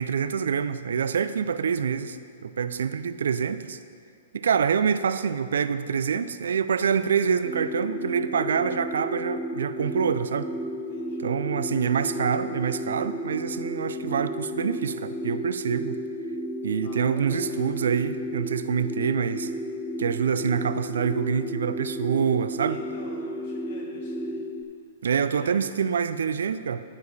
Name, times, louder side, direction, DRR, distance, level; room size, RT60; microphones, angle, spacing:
voice 1, 0.0-2.2 2.4-3.8 4.3-10.5 11.2-16.0 16.6-19.5 20.0-22.8 25.0-26.8, right 7 dB, 80° right, 13 dB, 0.3 m, -26 dB
voice 2, 1.4-1.9 10.9-11.3 16.8-17.6 22.6-24.5 25.1-25.7, left 2 dB, 60° left, -2 dB, 2.2 m, -48 dB
sound 1, 7.4-24.6, equal, 5° right, 0.5 m, -33 dB
12.5 x 4.9 x 4.1 m, 2.3 s
hypercardioid pair, 135°, 0 cm